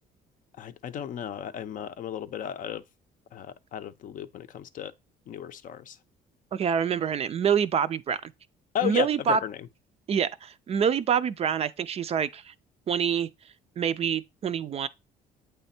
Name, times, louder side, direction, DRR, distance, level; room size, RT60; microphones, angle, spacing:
voice 1, 0.6-2.8 3.3-4.9 5.3-6.0 8.7-9.6, left 10 dB, 50° left, 0.5 m, -34 dB
voice 2, 6.5-8.3 8.8-9.4 10.1-12.5 12.9-13.3 13.8-14.9, right 7 dB, 40° right, 0.4 m, -26 dB
8.1 x 3.3 x 4.2 m
cardioid pair, 110°, 17 cm